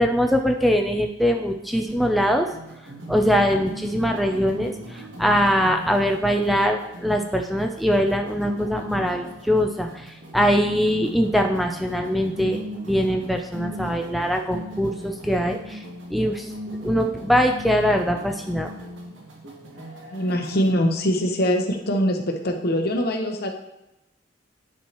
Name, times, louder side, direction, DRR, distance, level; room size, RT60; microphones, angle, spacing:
voice 1, 0.0-2.5 3.1-15.8 16.1-16.5 16.8-18.7, equal, ahead, 3 dB, 0.4 m, -22 dB
sound 1, 1.8-20.7, equal, 70° right, 1.2 m, -39 dB
voice 2, 20.1-23.5, equal, 55° left, 4 dB, 0.9 m, -23 dB
10.0 x 4.6 x 3.0 m, 0.92 s
head